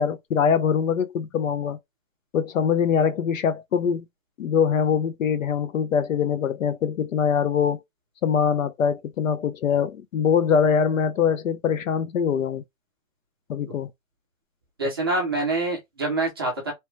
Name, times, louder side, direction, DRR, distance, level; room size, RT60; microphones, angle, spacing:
voice 1, 0.0-1.8 2.3-4.0 4.4-7.8 8.2-12.6 13.5-13.9, left 7 dB, 70° left, 0.7 m, -23 dB
voice 2, 14.8-16.7, right 2 dB, 20° right, 0.5 m, -25 dB
3.0 x 2.2 x 3.1 m
hypercardioid pair, 170°, 41 cm